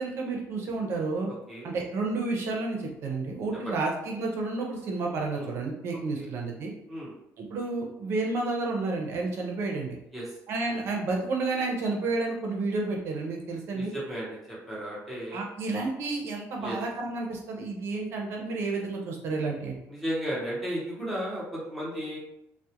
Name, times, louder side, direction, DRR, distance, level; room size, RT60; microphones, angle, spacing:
voice 1, 0.0-1.3 1.6-6.7 7.4-10.0 10.5-13.9 15.3-19.8, right 3 dB, 50° right, 0 dB, 0.5 m, -31 dB
voice 2, 1.3-1.7 3.6-3.7 5.3-5.5 6.2-6.3 6.9-7.1 10.1-10.2 13.7-14.3 14.7-15.4 16.6-16.8 19.9-22.2, equal, ahead, -8 dB, 0.8 m, -34 dB
2.3 x 2.0 x 2.8 m, 0.84 s
cardioid pair, 170°, 6 cm